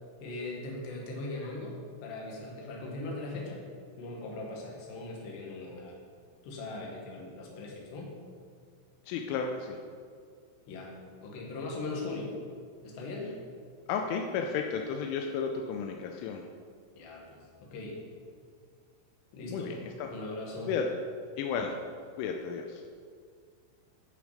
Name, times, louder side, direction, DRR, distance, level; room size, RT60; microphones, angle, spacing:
voice 1, 0.2-3.6 4.0-6.0 6.4-8.1 10.7-12.4 12.8-13.3 17.0-18.0 19.3-19.8 20.1-20.7, left 2 dB, 65° left, -1 dB, 3.8 m, -39 dB
voice 2, 9.1-9.8 13.9-16.4 19.5-20.1 20.7-20.8 21.4-21.8 22.2-22.8, left 6 dB, 85° left, 3 dB, 3.2 m, -33 dB
15.0 x 6.8 x 5.0 m, 2.1 s
omnidirectional pair, 5.6 m